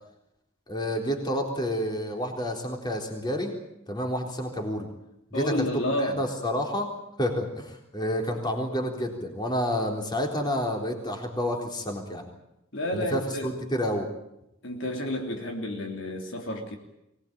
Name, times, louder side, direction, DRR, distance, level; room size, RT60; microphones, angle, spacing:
voice 1, 0.7-3.5 3.9-4.9 5.3-6.9 7.2-12.2 12.9-14.1, equal, 20° left, 2 dB, 3.8 m, -29 dB
voice 2, 5.3-6.3 12.7-13.5 14.6-16.8, left 1 dB, 65° left, 2 dB, 3.2 m, -30 dB
24.0 x 19.5 x 8.9 m, 0.85 s
head